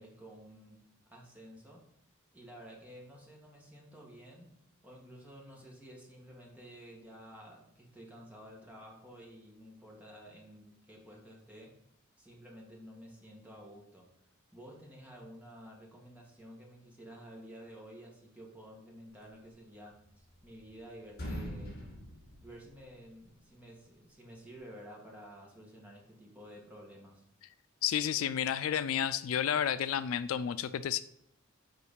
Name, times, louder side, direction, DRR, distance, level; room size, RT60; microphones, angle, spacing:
voice 1, 0.0-1.9 2.3-4.6 4.8-11.8 12.2-14.1 14.5-21.8 22.4-27.2, equal, 5° right, -2 dB, 1.8 m, -52 dB
sound 1, 20.0-20.8 21.1-23.2, equal, 50° left, 1.9 m, -43 dB
voice 2, 27.8-31.0, left 9 dB, 70° left, 14 dB, 0.3 m, -31 dB
6.6 x 4.5 x 5.5 m, 0.75 s
head